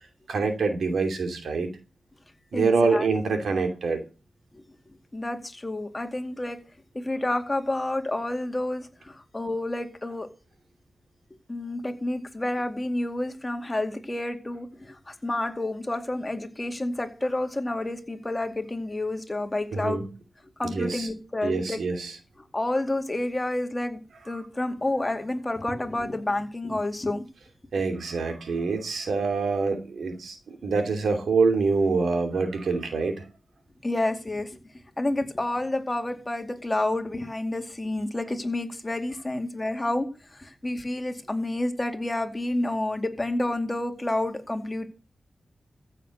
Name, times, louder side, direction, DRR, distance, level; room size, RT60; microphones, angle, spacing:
voice 1, 0.3-1.7 2.5-4.0 19.7-20.0 20.6-21.1 21.4-22.2 27.7-33.2, right 4 dB, 85° right, 6 dB, 2.7 m, -25 dB
voice 2, 2.5-3.1 4.5-4.6 5.1-6.6 6.9-10.3 11.5-20.0 20.6-21.8 22.5-24.0 24.3-27.2 33.8-34.6 35.0-44.9, left 1 dB, 20° left, 5 dB, 2.3 m, -29 dB
14.5 x 6.6 x 6.5 m, 0.33 s
cardioid pair, 75°, 0 cm